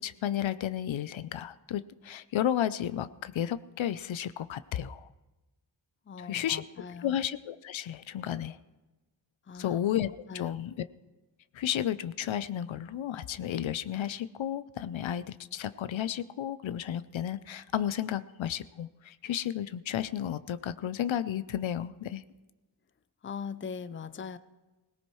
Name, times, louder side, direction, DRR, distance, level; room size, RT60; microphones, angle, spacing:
voice 1, 0.0-5.1 6.2-6.6 7.0-8.6 9.5-10.1 10.3-10.7 11.5-22.2, left 10 dB, 90° left, 14 dB, 0.6 m, -32 dB
voice 2, 6.1-7.2 9.5-9.8 10.3-10.6 23.2-24.4, left 6 dB, 30° left, 14 dB, 0.5 m, -40 dB
24.5 x 17.5 x 3.1 m, 1.1 s
wide cardioid pair, 115°, 45 cm